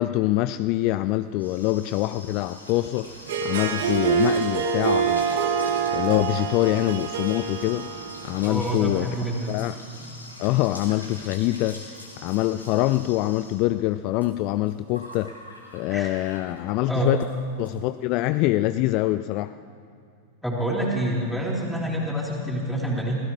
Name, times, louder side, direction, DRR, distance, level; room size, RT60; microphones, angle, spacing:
voice 1, 0.0-5.3 5.9-8.0 8.2-9.1 9.5-9.8 10.4-15.3 15.7-17.2 17.6-19.5, left 16 dB, 40° left, 13 dB, 0.3 m, -25 dB
sound 1, 0.9-16.7 17.1-17.3 17.6-17.7 18.0-18.4, left 1 dB, 90° left, 2.9 m, -44 dB
Harp, 3.1-8.6, right 6 dB, 60° right, 1.5 m, -26 dB
voice 2, 8.4-9.6 15.9-16.1 16.9-17.1 20.4-23.2, right 1 dB, ahead, -4 dB, 3.6 m, -27 dB
27.0 x 17.0 x 3.2 m, 2.5 s
figure-of-eight pair, 90°, 0 cm